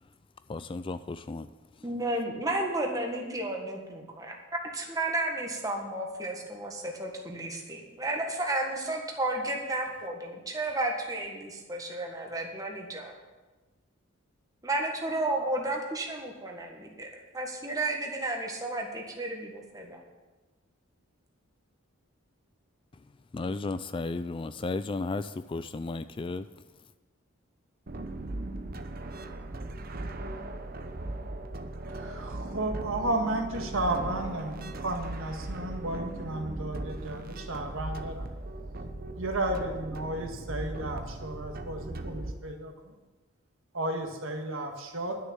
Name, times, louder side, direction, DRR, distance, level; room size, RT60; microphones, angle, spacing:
voice 1, 0.5-1.5 23.3-26.5, left 3 dB, 25° left, 13 dB, 0.3 m, -34 dB
voice 2, 1.8-4.4 4.7-13.1 14.6-20.0, right 2 dB, 15° right, 1 dB, 1.7 m, -32 dB
sound 1, 27.9-42.3, right 2 dB, 45° right, 0.8 m, -38 dB
voice 3, 31.9-38.3 39.2-42.9 43.7-45.2, right 2 dB, 75° right, 3 dB, 1.8 m, -33 dB
11.5 x 6.6 x 8.9 m, 1.2 s
head